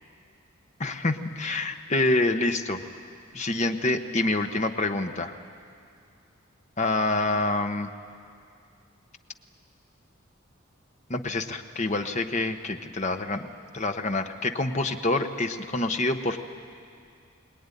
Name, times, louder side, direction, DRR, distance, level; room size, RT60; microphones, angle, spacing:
voice 1, 0.8-2.8 3.3-5.3 6.8-7.9 11.1-13.5 13.7-16.4, left 2 dB, 35° left, 6 dB, 1.1 m, -27 dB
22.5 x 20.0 x 10.0 m, 2.3 s
head